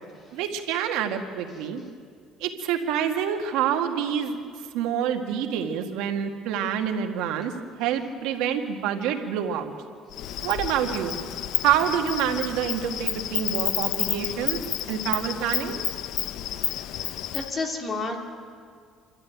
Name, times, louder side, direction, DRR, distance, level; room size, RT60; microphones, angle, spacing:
voice 1, 0.3-1.8 2.4-4.4 4.7-7.5 7.8-9.7 10.4-11.1 11.6-14.6 14.9-15.8, right 9 dB, 85° right, 4 dB, 1.9 m, -27 dB
Insect, 10.1-17.5, left 12 dB, 65° left, 0.7 m, -30 dB
voice 2, 17.0-18.2, left 3 dB, 30° left, 2 dB, 2.6 m, -32 dB
27.5 x 13.0 x 9.2 m, 2.1 s
cardioid pair, 155°, 0 cm